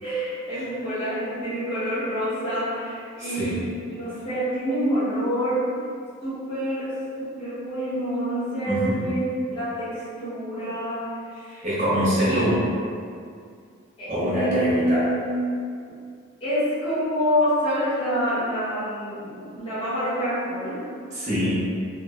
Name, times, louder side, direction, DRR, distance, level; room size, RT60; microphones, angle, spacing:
voice 1, 0.0-5.7 6.2-6.9 7.2-9.2 9.5-11.6 12.2-12.5 14.0-15.3 16.4-20.9, equal, 25° left, -13 dB, 0.9 m, -27 dB
voice 2, 3.2-3.7 8.7-9.1 11.6-12.6 14.1-15.1 21.1-21.6, equal, 35° right, -10 dB, 0.8 m, -24 dB
2.4 x 2.1 x 2.4 m, 2.3 s
head